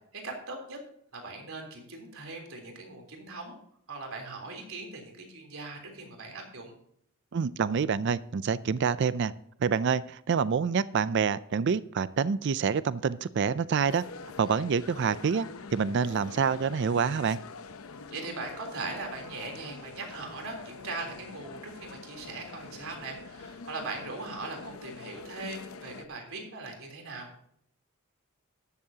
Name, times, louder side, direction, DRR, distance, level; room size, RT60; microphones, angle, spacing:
voice 1, 0.1-0.8 1.1-3.6 3.9-6.7 18.1-27.3, right 3 dB, 75° right, 2 dB, 3.5 m, -40 dB
voice 2, 7.3-9.3 9.6-14.0 14.4-15.5 15.7-17.4, right 6 dB, 55° right, 17 dB, 0.4 m, -27 dB
sound 1, 13.8-26.1, left 4 dB, 85° left, 0.7 m, -45 dB
14.0 x 12.5 x 2.8 m, 0.68 s
head